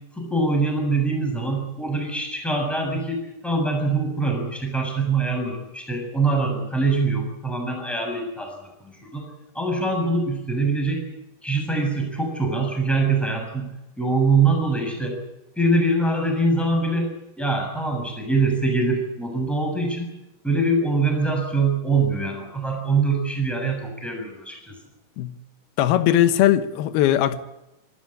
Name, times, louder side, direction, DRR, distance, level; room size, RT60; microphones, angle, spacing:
voice 1, 0.1-8.5 8.8-9.3 9.5-11.0 11.4-13.7 14.0-15.2 15.6-17.1 17.4-20.1 20.4-24.8, right 3 dB, ahead, 6.7 m, -23 dB
voice 2, 25.8-27.4, left 12 dB, 75° left, 3.0 m, -19 dB
26.5 x 14.0 x 8.8 m
omnidirectional pair, 4.6 m